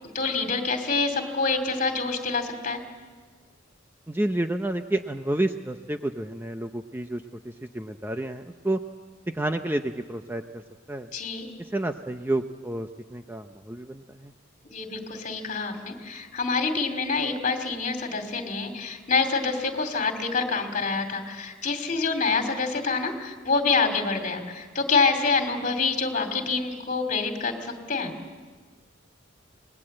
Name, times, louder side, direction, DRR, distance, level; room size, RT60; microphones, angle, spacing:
voice 1, 0.1-2.8 11.1-11.5 14.6-28.1, left 4 dB, 40° left, 5 dB, 2.5 m, -26 dB
voice 2, 4.1-8.8 9.3-10.6 10.9-11.1 11.6-14.3, right 1 dB, 10° right, 7 dB, 0.6 m, -30 dB
27.0 x 20.0 x 7.8 m, 1.5 s
head